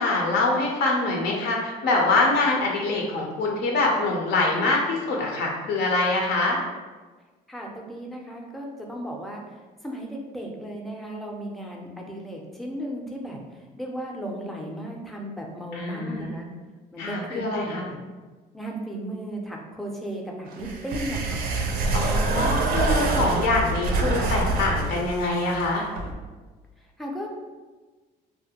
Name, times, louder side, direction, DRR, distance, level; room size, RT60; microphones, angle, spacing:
voice 1, 0.0-6.6 15.7-16.4 17.0-17.9 21.9-25.9, left 2 dB, 80° left, 0 dB, 0.5 m, -24 dB
voice 2, 7.5-9.4 9.8-13.4 13.8-16.5 16.9-18.0 18.5-21.5 27.0-27.3, right 1 dB, ahead, -1 dB, 0.4 m, -35 dB
sound 1, 20.5-26.1, right 2 dB, 65° right, 0.4 m, -26 dB
2.4 x 2.1 x 2.7 m, 1.3 s
cardioid pair, 110°, 17 cm